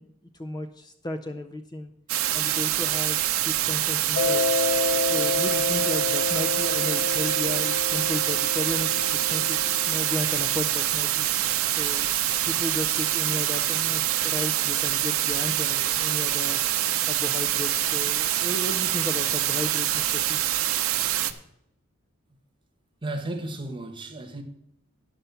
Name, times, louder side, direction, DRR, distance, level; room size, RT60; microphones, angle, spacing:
voice 1, 0.0-1.9 2.3-4.5 5.0-9.6 9.9-11.3 11.8-12.1 12.5-16.6 17.1-20.4 21.3-21.4, left 1 dB, 20° left, 0.4 m, -34 dB
sound 1, 2.1-21.3, right 13 dB, 80° right, 0.7 m, -25 dB
Mallet percussion, 4.2-10.5, left 3 dB, 85° left, 0.7 m, -29 dB
voice 2, 23.0-24.4, right 2 dB, 25° right, 1.3 m, -34 dB
11.5 x 5.6 x 6.8 m
head